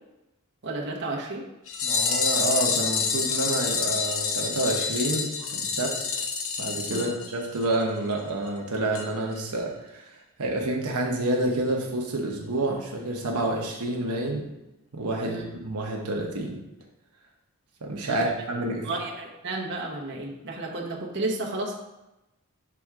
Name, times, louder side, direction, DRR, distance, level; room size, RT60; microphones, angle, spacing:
voice 1, 0.6-1.4 6.9-7.1 15.2-15.4 18.1-18.3 18.8-21.7, right 2 dB, 50° right, -2 dB, 1.1 m, -32 dB
sound 1, 1.7-7.8 8.1-8.2 8.5-8.6 9.0-9.1 9.4-9.5, left 5 dB, 65° left, 0.7 m, -28 dB
voice 2, 1.8-5.9 6.6-10.1 10.4-14.4 14.9-15.4 15.6-16.6 17.8-18.9, right 2 dB, 90° right, -1 dB, 0.9 m, -28 dB
6.0 x 3.5 x 4.8 m, 0.96 s
head